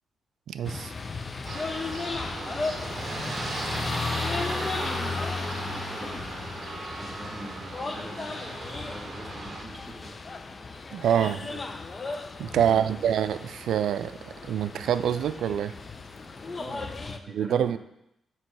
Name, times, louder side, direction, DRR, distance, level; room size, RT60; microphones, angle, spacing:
voice 1, 0.5-0.9 10.9-11.4 12.4-15.7 17.3-17.8, right 9 dB, 80° right, 12 dB, 0.3 m, -26 dB
sound 1, 0.6-17.2, left 3 dB, 35° left, 0.5 m, -35 dB
sound 2, 1.5-9.6, right 3 dB, 45° right, 0.9 m, -37 dB
voice 2, 2.2-3.0 4.1-6.2 6.9-8.4 8.8-10.1 11.3-11.7 12.6-13.2 16.6-17.8, right 1 dB, 5° right, 0 dB, 1.4 m, -44 dB
7.5 x 3.0 x 5.7 m, 0.80 s
cardioid pair, 85°, 0 cm